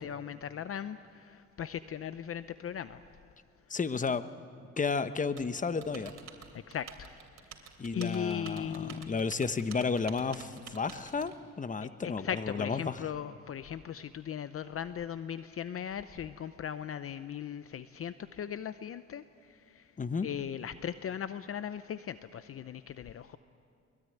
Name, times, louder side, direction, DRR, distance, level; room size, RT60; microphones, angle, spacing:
voice 1, 0.0-3.0 3.7-3.8 6.5-7.7 7.9-9.2 11.8-19.9 20.2-23.4, left 8 dB, 50° left, 12 dB, 0.7 m, -38 dB
voice 2, 3.7-4.2 4.8-6.1 7.8-13.0 20.0-20.3, left 5 dB, 25° left, 12 dB, 1.0 m, -32 dB
Typing, 5.4-11.3, right 7 dB, 60° right, 3.1 m, -50 dB
23.0 x 22.0 x 9.3 m, 2.4 s
cardioid pair, 90°, 30 cm